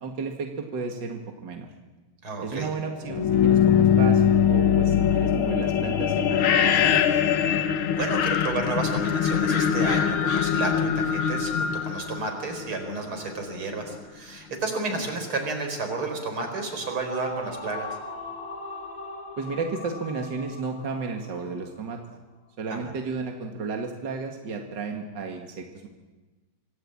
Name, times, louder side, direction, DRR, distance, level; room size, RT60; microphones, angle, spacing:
voice 1, 0.0-1.7 2.4-7.2 15.0-15.1 19.4-22.0 22.6-25.9, right 4 dB, 60° right, 3 dB, 2.5 m, -33 dB
voice 2, 2.2-2.7 8.0-17.9 22.7-22.8, right 3 dB, 90° right, 4 dB, 5.2 m, -31 dB
sound 1, 3.1-12.9, left 8 dB, 90° left, 2.0 m, -22 dB
sound 2, 16.6-21.9, left 2 dB, 45° left, 3.0 m, -39 dB
26.0 x 17.5 x 8.8 m, 1.2 s
omnidirectional pair, 2.3 m